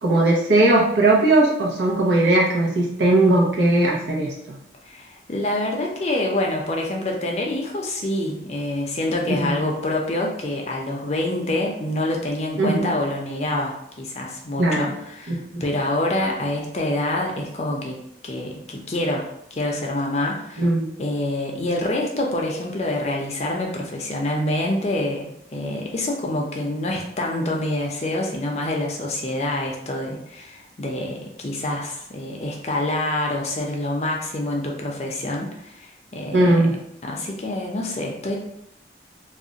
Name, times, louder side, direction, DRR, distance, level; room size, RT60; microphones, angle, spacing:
voice 1, 0.0-4.3 9.3-9.5 12.6-12.9 14.6-14.9 15.3-15.6 20.6-20.8 36.3-36.7, right 2 dB, 85° right, -3 dB, 0.6 m, -18 dB
voice 2, 4.9-17.9 18.2-19.3 19.5-20.6 21.0-36.6 37.0-38.4, left 1 dB, 35° left, 0 dB, 0.5 m, -26 dB
2.4 x 2.1 x 3.8 m, 0.79 s
head